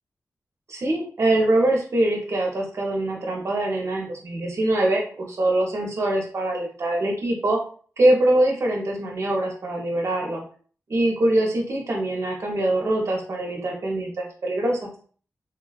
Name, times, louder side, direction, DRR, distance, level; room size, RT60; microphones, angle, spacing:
voice 1, 0.7-7.6 8.0-10.4 10.9-14.9, right 1 dB, 55° right, -1 dB, 0.7 m, -23 dB
3.4 x 2.3 x 2.3 m, 0.43 s
wide cardioid pair, 155°, 6 cm